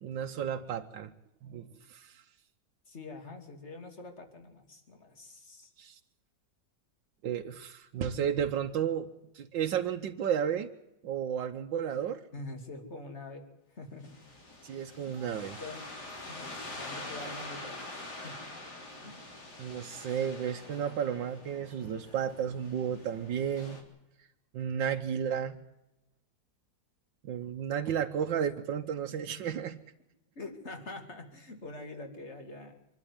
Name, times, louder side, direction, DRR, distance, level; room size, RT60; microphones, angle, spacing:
voice 1, 0.0-1.1 1.4-2.2 5.8-6.0 7.2-9.1 9.3-10.7 11.0-12.2 14.6-15.6 19.6-23.8 24.5-25.6 27.2-29.7, right 8 dB, 90° right, 4 dB, 1.7 m, -33 dB
voice 2, 2.9-5.7 12.3-14.2 15.1-15.2 15.6-16.0 16.2-18.4 19.0-19.2 30.3-32.8, left 2 dB, 35° left, 5 dB, 3.0 m, -45 dB
sound 1, 14.0-23.8, left 2 dB, 60° left, 4.1 m, -45 dB
25.5 x 12.0 x 9.5 m, 0.89 s
omnidirectional pair, 2.0 m